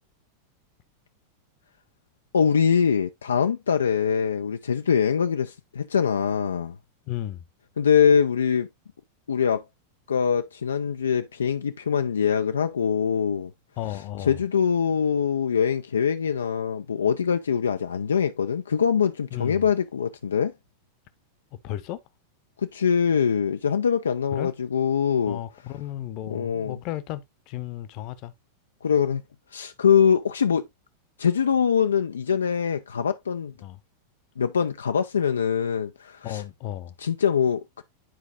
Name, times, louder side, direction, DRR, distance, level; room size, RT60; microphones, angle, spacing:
voice 1, 2.3-6.8 7.8-8.7 9.3-9.6 10.1-13.5 14.3-20.5 22.6-25.4 26.3-26.8 28.8-29.2 29.5-30.7 31.2-33.5 34.4-36.4 37.0-37.8, left 7 dB, 70° left, 0.4 m, -23 dB
voice 2, 7.1-7.5 13.8-14.4 19.3-19.7 21.6-22.0 24.3-24.5 25.3-28.3 33.6-33.8 36.2-36.9, left 13 dB, 40° left, 0.8 m, -34 dB
10.5 x 4.8 x 2.6 m
figure-of-eight pair, 90°, 0 cm